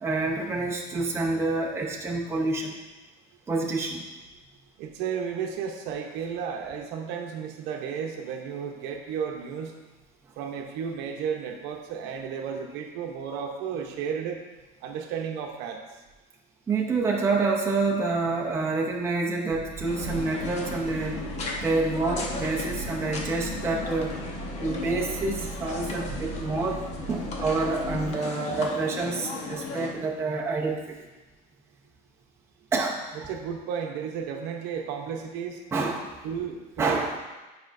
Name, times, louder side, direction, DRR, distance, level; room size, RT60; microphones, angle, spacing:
voice 1, 0.0-2.8 3.5-4.0 16.7-21.3 21.6-24.2 24.6-31.0 32.7-33.3 35.7-36.1 36.8-37.2, right 3 dB, 15° right, -2 dB, 0.7 m, -28 dB
voice 2, 4.8-9.7 10.4-14.4 14.8-15.8 33.3-35.6 36.2-37.2, right 7 dB, 65° right, 3 dB, 0.8 m, -33 dB
sound 1, 19.5-28.1, right 4 dB, 35° right, 1.4 m, -39 dB
sound 2, 19.8-29.9, left 4 dB, 35° left, 1.0 m, -36 dB
9.5 x 5.1 x 2.6 m, 1.2 s
cardioid pair, 150°, 19 cm